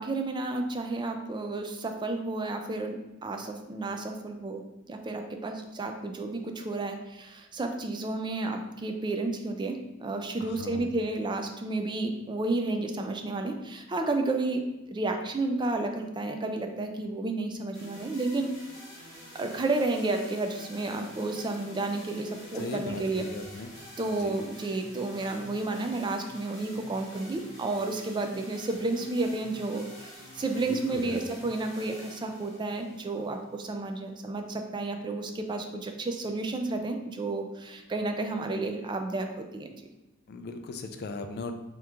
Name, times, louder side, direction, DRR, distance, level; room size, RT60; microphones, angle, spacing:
voice 1, 0.0-4.6 4.9-18.6 19.3-23.2 24.0-39.7, right 2 dB, 20° right, 5 dB, 0.3 m, -31 dB
voice 2, 10.4-11.0 22.5-23.7 24.1-24.4 30.7-31.2 40.3-41.5, left 3 dB, 50° left, 7 dB, 0.4 m, -38 dB
sound 1, 17.7-33.8, equal, 15° left, 1.3 m, -48 dB
3.6 x 3.0 x 3.4 m, 1.0 s
head